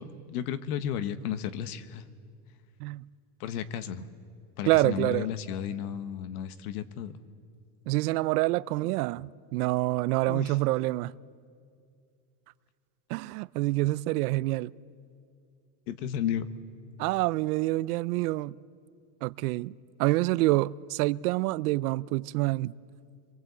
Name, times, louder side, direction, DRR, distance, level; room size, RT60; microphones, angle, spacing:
voice 1, 0.0-2.0 3.4-4.1 4.6-7.1 10.3-10.5 15.9-16.4, left 9 dB, 80° left, 1.4 m, -33 dB
voice 2, 4.7-5.3 7.9-11.1 13.1-14.7 17.0-18.6 19.2-19.7 20.0-22.8, right 19 dB, 80° right, 0.6 m, -27 dB
27.0 x 23.0 x 8.2 m
cardioid pair, 175°, 45 cm